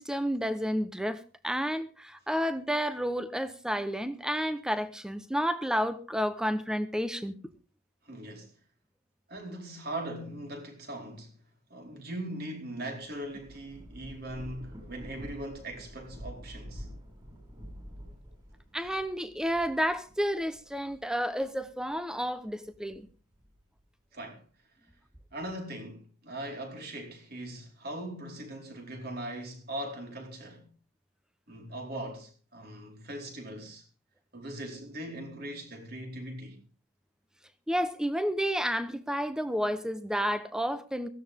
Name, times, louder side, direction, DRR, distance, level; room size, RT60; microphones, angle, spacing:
voice 1, 0.0-7.4 18.7-23.1 37.7-41.1, equal, 5° right, 0.9 m, -31 dB
voice 2, 8.0-8.5 9.3-11.3 11.7-16.9 24.1-24.4 25.3-30.7 31.5-33.9 34.3-36.6, right 1 dB, 45° right, 4.5 m, -40 dB
Thunder / Rain, 13.2-21.9 22.5-23.8, equal, 20° right, 6.8 m, -48 dB
17.5 x 15.5 x 3.6 m
head